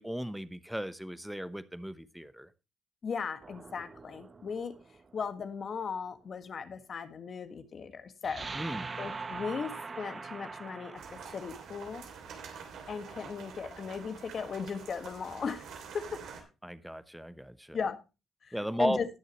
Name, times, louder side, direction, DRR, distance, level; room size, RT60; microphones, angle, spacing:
voice 1, 0.0-2.5 8.5-8.9 16.6-17.8 18.5-19.0, equal, 5° right, 13 dB, 0.9 m, -35 dB
voice 2, 3.0-4.7 5.1-8.5 9.0-9.7 10.0-12.0 12.9-15.7 15.9-16.2 17.7-18.0 18.4-19.1, left 6 dB, 50° left, 9 dB, 1.7 m, -37 dB
sound 1, 3.4-5.3 8.2-11.6, right 4 dB, 35° right, 0.8 m, -42 dB
sound 2, 11.0-16.4, right 6 dB, 75° right, 2.8 m, -47 dB
18.5 x 6.6 x 3.0 m, 0.28 s
cardioid pair, 90°, 0 cm